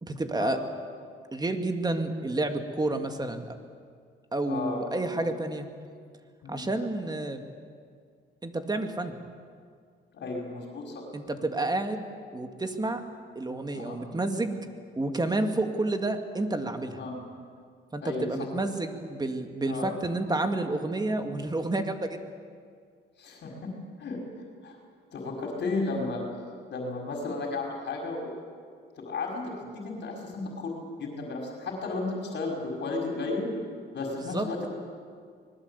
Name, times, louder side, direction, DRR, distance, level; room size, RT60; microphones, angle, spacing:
voice 1, 0.0-0.6 1.3-3.6 4.3-5.7 6.5-7.4 8.4-9.2 11.1-13.1 13.4-14.7 15.0-17.0 17.9-22.2 34.2-34.5, right 2 dB, 20° right, 6 dB, 2.3 m, -30 dB
voice 2, 4.5-4.8 5.2-5.3 6.4-6.7 10.1-11.0 13.7-14.0 17.0-17.2 18.0-18.3 19.6-19.9 23.2-23.5 24.0-24.2 24.6-24.8 25.1-26.2 26.7-28.3 29.0-33.5 33.9-34.7, left 3 dB, 60° left, 1 dB, 5.1 m, -33 dB
25.0 x 20.0 x 8.4 m, 2.1 s
cardioid pair, 90°, 20 cm